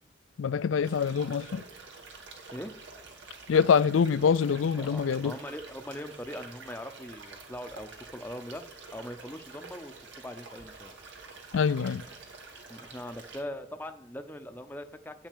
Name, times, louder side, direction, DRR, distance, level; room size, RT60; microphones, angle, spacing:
voice 1, 0.4-1.6 3.5-5.3 11.5-12.0, left 6 dB, 85° left, 0.4 m, -25 dB
sound 1, 0.8-13.4, right 4 dB, 70° right, 2.1 m, -48 dB
voice 2, 4.7-8.6 8.9-10.9 12.7-15.3, left 1 dB, 10° left, 0.6 m, -41 dB
9.0 x 6.1 x 8.4 m
head